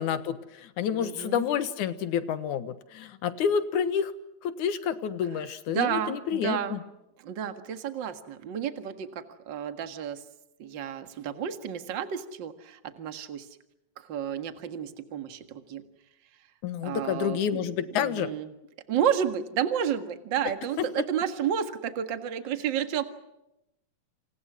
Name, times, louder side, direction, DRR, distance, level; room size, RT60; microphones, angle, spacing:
voice 1, 0.0-4.1 4.4-6.8 16.6-18.3 20.8-20.9, left 8 dB, 80° left, 12 dB, 2.8 m, -29 dB
voice 2, 0.9-1.5 5.7-6.8 7.2-10.2 10.6-13.5 14.0-15.8 16.8-18.5 18.9-23.0, right 9 dB, 45° right, 8 dB, 2.0 m, -31 dB
29.0 x 27.5 x 6.2 m, 0.88 s
omnidirectional pair, 3.5 m